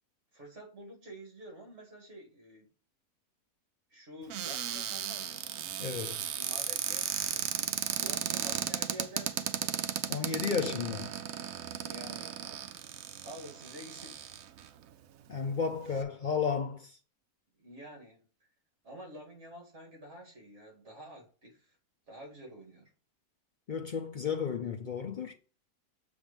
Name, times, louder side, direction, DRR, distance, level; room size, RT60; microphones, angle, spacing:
voice 1, 0.3-2.7 3.9-5.5 6.2-9.8 11.8-12.4 13.2-14.2 17.6-18.2 18.8-21.8 22.1-22.9, right 1 dB, 50° right, 2.4 m, -49 dB
Cupboard open or close, 4.3-14.7 15.3-15.4 15.7-16.0, right 10 dB, 70° right, 1.0 m, -35 dB
voice 2, 5.8-6.3 10.1-11.1 15.3-17.0 23.7-25.3, left 6 dB, 65° left, 0.4 m, -33 dB
7.1 x 3.4 x 5.2 m
omnidirectional pair, 1.6 m